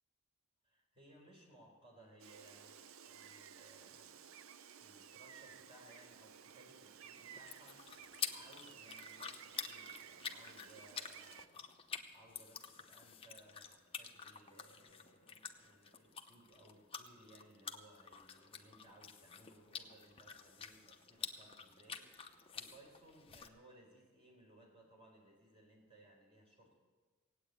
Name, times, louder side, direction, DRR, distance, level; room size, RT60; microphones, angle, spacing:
voice 1, 0.6-4.2 4.8-26.7, right 1 dB, 25° right, -1 dB, 4.0 m, -63 dB
Gull seagull, 2.2-11.5, right 8 dB, 75° right, 0.6 m, -56 dB
sound 1, 7.3-23.5, left 7 dB, 25° left, 0.8 m, -49 dB
17.0 x 8.9 x 8.2 m, 1.4 s
head